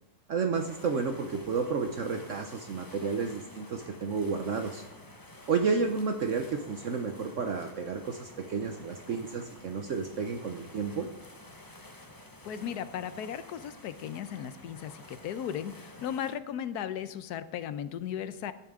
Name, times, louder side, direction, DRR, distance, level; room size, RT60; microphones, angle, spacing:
voice 1, 0.3-4.8 5.5-11.1, right 5 dB, 55° right, 6 dB, 1.0 m, -31 dB
sound 1, 0.5-16.4, left 1 dB, 15° left, 0.9 m, -50 dB
voice 2, 12.4-18.5, left 9 dB, 75° left, 13 dB, 1.2 m, -36 dB
14.0 x 10.5 x 3.7 m, 0.89 s
omnidirectional pair, 1.7 m